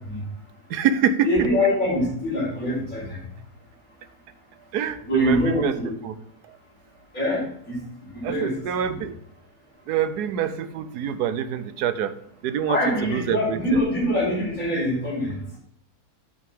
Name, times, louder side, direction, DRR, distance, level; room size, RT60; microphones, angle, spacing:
voice 1, 0.7-1.5 4.7-5.8 6.0-6.2 6.5-6.6 8.2-9.2 9.9-12.1 12.4-13.8, right 8 dB, 85° right, 12 dB, 1.3 m, -26 dB
voice 2, 1.3-3.2 5.1-5.7 7.1-7.8 8.2-8.5 8.9-9.0 12.7-15.4, left 1 dB, 60° left, -7 dB, 4.8 m, -24 dB
8.5 x 8.4 x 3.7 m, 0.69 s
omnidirectional pair, 1.6 m